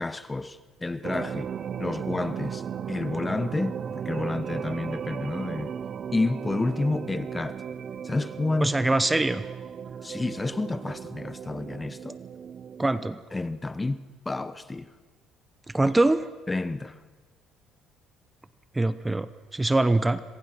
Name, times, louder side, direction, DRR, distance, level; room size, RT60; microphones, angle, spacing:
voice 1, 0.0-1.5 1.8-5.7 6.1-7.6 8.0-8.7 10.0-12.2 13.3-14.9 16.5-17.0, left 2 dB, 20° left, 1.1 m, -30 dB
sound 1, 1.0-13.1, right 7 dB, 50° right, 0.6 m, -36 dB
voice 2, 8.6-9.4 12.8-13.2 15.7-16.3 18.7-20.2, right 2 dB, 15° right, 0.9 m, -23 dB
26.5 x 21.0 x 6.0 m
supercardioid pair, 85°, 0 cm